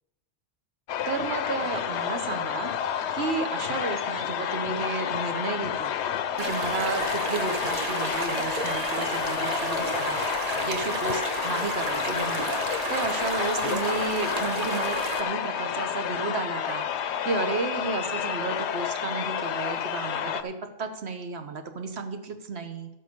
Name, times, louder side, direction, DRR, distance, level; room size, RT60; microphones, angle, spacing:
sound 1, 0.9-20.4, left 9 dB, 85° left, 0.9 m, -30 dB
voice 1, 1.0-2.7 3.1-5.9 6.4-10.2 10.7-12.5 12.9-16.8 17.2-22.9, right 4 dB, 70° right, 6 dB, 1.3 m, -32 dB
sound 2, 6.4-15.2, right 3 dB, 40° right, 0.8 m, -32 dB
12.0 x 7.5 x 5.3 m, 0.96 s
omnidirectional pair, 1.1 m